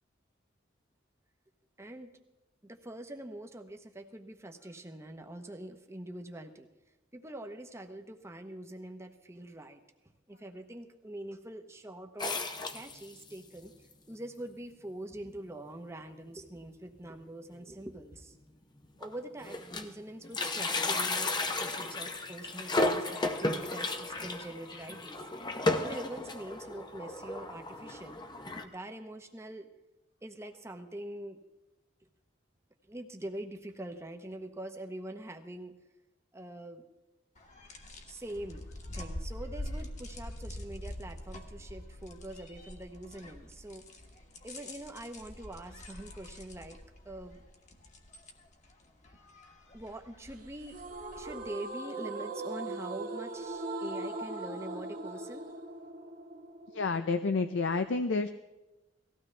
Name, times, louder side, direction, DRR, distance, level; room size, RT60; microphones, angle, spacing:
voice 1, 1.8-2.1 2.6-6.7 7.1-9.8 10.3-12.4 12.7-13.7 14.1-18.4 19.0-25.2 25.8-28.2 28.6-29.7 30.2-31.4 32.9-35.7 36.3-36.9 38.1-38.7 38.9-43.8 44.4-46.8 47.0-47.4 49.7-50.8 51.2-55.5, right 1 dB, 15° right, 5 dB, 0.9 m, -44 dB
sound 1, 12.2-13.4 13.9-14.0 14.2-14.3 15.2-15.3 15.7-15.9 16.2-16.3 17.6-17.7 18.3-18.4 18.8-20.0 20.2-28.6, left 2 dB, 25° left, 0.8 m, -34 dB
sound 2, 37.3-51.5, left 1 dB, 40° left, 1.4 m, -45 dB
sound 3, 50.7-57.8, right 2 dB, 45° right, 1.5 m, -40 dB
voice 2, 56.7-58.3, left 4 dB, 80° left, 9 dB, 0.5 m, -30 dB
18.5 x 15.0 x 3.3 m, 1.0 s
head